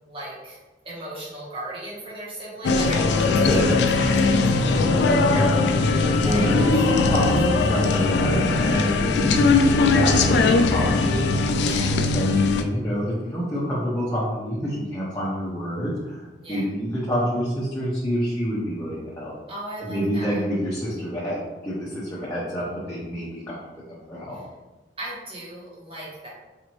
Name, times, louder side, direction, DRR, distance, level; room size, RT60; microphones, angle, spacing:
voice 1, 0.1-0.6 0.8-3.6 3.9-4.9 6.2-7.2 11.6-11.9 16.4-16.6 19.5-20.4 25.0-26.3, right 1 dB, 30° right, -7 dB, 1.1 m, -37 dB
sound 1, 2.6-12.6, left 3 dB, 70° left, 0.3 m, -20 dB
voice 2, 3.2-3.8 5.3-5.7 6.0-16.2 16.5-19.3 19.8-23.6 23.9-24.4, equal, 15° left, -8 dB, 0.6 m, -27 dB
4.2 x 2.6 x 3.0 m, 1.1 s
head